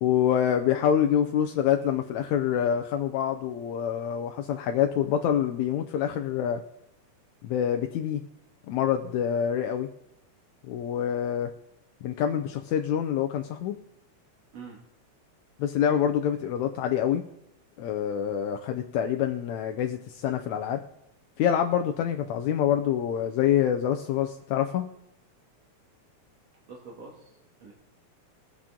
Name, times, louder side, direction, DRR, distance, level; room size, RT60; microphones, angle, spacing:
voice 1, 0.0-6.6 7.4-8.2 8.7-9.9 10.7-11.5 12.0-13.8 15.6-17.2 17.8-20.8 21.4-24.8, left 9 dB, 80° left, 6 dB, 2.0 m, -26 dB
voice 2, 26.7-27.7, right 4 dB, 65° right, -2 dB, 2.8 m, -45 dB
22.0 x 7.4 x 3.7 m, 0.79 s
omnidirectional pair, 3.3 m